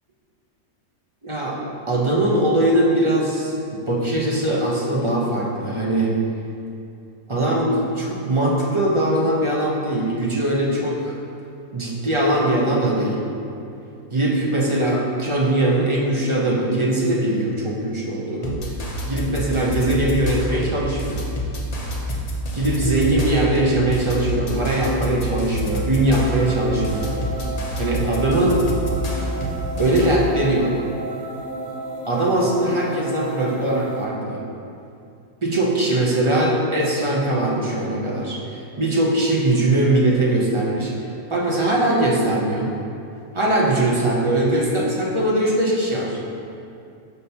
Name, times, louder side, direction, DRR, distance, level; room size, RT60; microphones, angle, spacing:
voice 1, 1.2-1.6 1.9-6.1 7.3-11.2 11.7-13.2 14.1-18.6 19.1-21.2 22.5-27.1 27.8-28.7 29.8-30.8 32.1-34.4 35.4-38.4 38.8-40.9 41.3-42.7 43.3-46.2, right 1 dB, 25° right, -3 dB, 0.7 m, -21 dB
sound 1, 18.4-30.1, equal, 40° left, 0.6 m, -27 dB
sound 2, 26.0-34.0, right 1 dB, 45° right, 1.0 m, -32 dB
6.2 x 3.6 x 5.5 m, 2.5 s
omnidirectional pair, 1.5 m